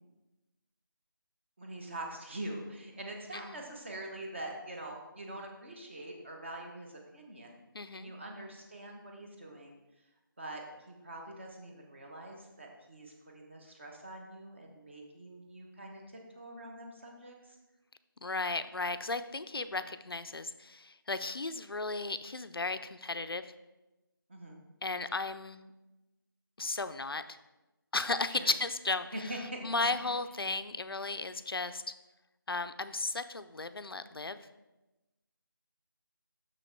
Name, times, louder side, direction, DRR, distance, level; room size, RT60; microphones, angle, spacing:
voice 1, 1.6-7.6 7.9-9.8 10.4-17.6 24.3-24.6 28.3-28.5 29.1-29.7 30.0-30.1, right 1 dB, 30° right, 1 dB, 1.0 m, -44 dB
voice 2, 7.7-8.1 18.2-23.5 24.8-25.7 26.6-27.2 27.9-29.3 29.6-31.8 32.5-34.4, left 3 dB, 90° left, 11 dB, 0.6 m, -35 dB
6.3 x 6.1 x 4.5 m, 1.0 s
figure-of-eight pair, 170°, 12 cm